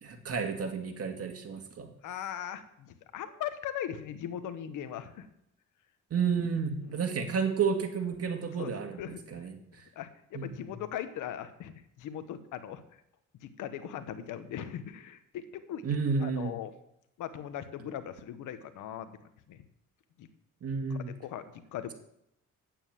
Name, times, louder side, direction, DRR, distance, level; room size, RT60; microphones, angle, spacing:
voice 1, 0.0-1.9 6.1-9.0 9.3-9.5 10.3-10.6 15.8-16.5 20.6-21.1, right 5 dB, 50° right, 5 dB, 2.0 m, -31 dB
voice 2, 2.0-5.3 6.8-7.0 8.6-8.7 9.0-9.5 9.9-12.8 13.4-15.8 16.2-16.7 17.2-19.1 19.5-19.6 20.2-20.3 20.9-21.9, left 10 dB, 85° left, 11 dB, 1.2 m, -39 dB
9.3 x 8.9 x 7.5 m, 0.77 s
cardioid pair, 90°, 30 cm